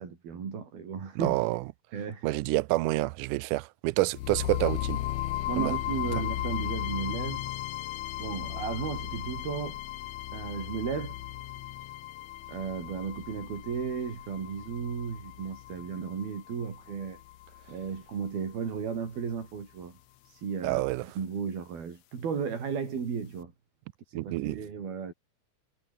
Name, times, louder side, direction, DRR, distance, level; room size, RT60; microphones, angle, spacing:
voice 1, 0.0-1.4 1.9-2.3 5.5-7.5 8.2-9.8 10.3-11.2 12.5-17.2 17.7-20.0 20.3-23.5 24.1-25.1, right 6 dB, 75° right, 6.2 m, -34 dB
voice 2, 1.2-1.6 2.2-5.0 5.6-5.7 20.6-21.0 24.1-24.6, right 20 dB, 90° right, 1.8 m, -28 dB
sound 1, 4.1-18.1, left 15 dB, 85° left, 1.6 m, -36 dB
omnidirectional pair, 4.4 m